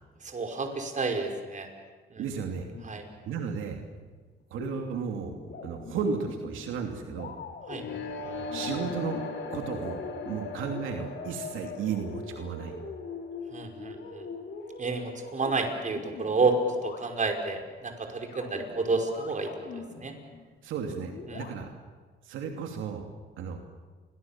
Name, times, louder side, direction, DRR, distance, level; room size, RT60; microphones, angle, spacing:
voice 1, 0.2-1.7 2.1-2.3 2.8-3.1 7.7-7.8 13.5-14.3 14.8-16.6 16.8-20.1 21.3-21.5, right 4 dB, 40° right, 3 dB, 5.3 m, -30 dB
voice 2, 2.2-2.7 3.2-3.8 4.5-5.4 5.6-7.3 8.5-9.2 9.5-12.8 20.6-21.7 22.2-23.1 23.4-23.6, right 6 dB, 85° right, 3 dB, 2.9 m, -34 dB
sound 1, 2.7-4.1 4.4-17.6 18.2-21.5, left 4 dB, 60° left, 5.1 m, -43 dB
sound 2, 7.7-13.6, left 3 dB, 75° left, 5.2 m, -39 dB
29.0 x 23.5 x 7.4 m, 1.5 s
cardioid pair, 90°, 20 cm